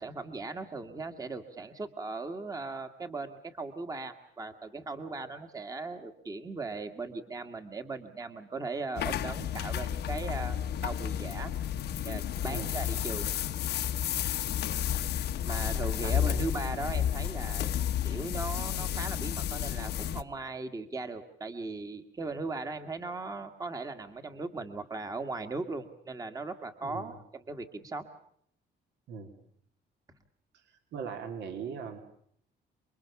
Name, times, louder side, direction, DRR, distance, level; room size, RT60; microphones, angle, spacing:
voice 1, 0.0-10.6 10.8-11.5 12.0-13.3 15.4-17.7 18.0-28.1, right 3 dB, 20° right, 7 dB, 1.7 m, -38 dB
sound 1, 9.0-20.2, left 10 dB, 60° left, 1.2 m, -31 dB
voice 2, 16.0-16.5 26.8-27.2 29.1-29.3 30.5-32.0, right 6 dB, 70° right, 6 dB, 3.1 m, -40 dB
29.5 x 22.5 x 7.1 m, 0.67 s
cardioid pair, 150°, 19 cm